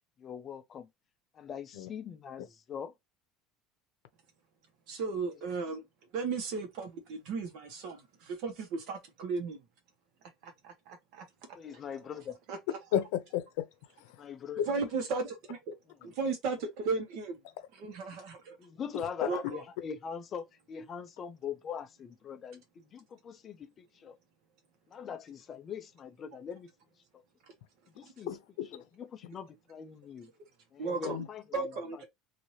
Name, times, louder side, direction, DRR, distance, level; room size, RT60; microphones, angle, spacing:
voice 1, 0.2-0.9 1.3-2.9 11.5-12.4 14.2-14.6 18.6-24.2 24.9-26.7 27.1-27.2 27.9-28.3 28.7-30.3 30.7-31.8, left 7 dB, 25° left, 0.4 m, -42 dB
voice 2, 4.9-5.8 6.1-9.6 10.4-11.2 12.5-12.8 14.7-15.7 16.0-17.4 17.8-18.6 19.2-19.6 28.0-28.1 30.8-31.2 31.5-32.1, right 4 dB, 50° right, 1.1 m, -35 dB
voice 3, 12.9-13.7 14.0-14.2 14.6-14.7 28.3-28.8 31.0-31.3, left 10 dB, 90° left, 0.6 m, -33 dB
3.2 x 2.7 x 2.8 m
cardioid pair, 175°, 0 cm